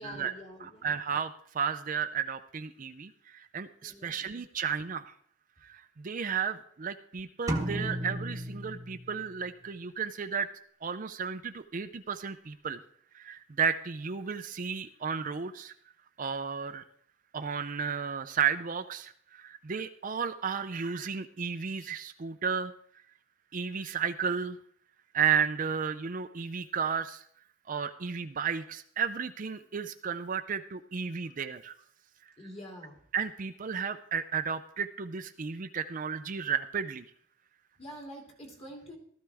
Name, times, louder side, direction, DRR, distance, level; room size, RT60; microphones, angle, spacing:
voice 1, 0.0-0.9 3.8-4.3 32.4-33.0 37.8-39.0, equal, 30° left, -1 dB, 2.9 m, -46 dB
voice 2, 0.6-5.1 5.6-10.5 10.8-12.8 13.1-15.7 16.2-16.8 17.3-22.7 23.5-24.6 25.1-27.2 27.7-31.7 33.1-37.0, right 6 dB, 40° right, 9 dB, 0.5 m, -33 dB
sound 1, 7.5-9.5, equal, 15° right, 1.1 m, -34 dB
15.5 x 13.5 x 3.5 m, 0.64 s
head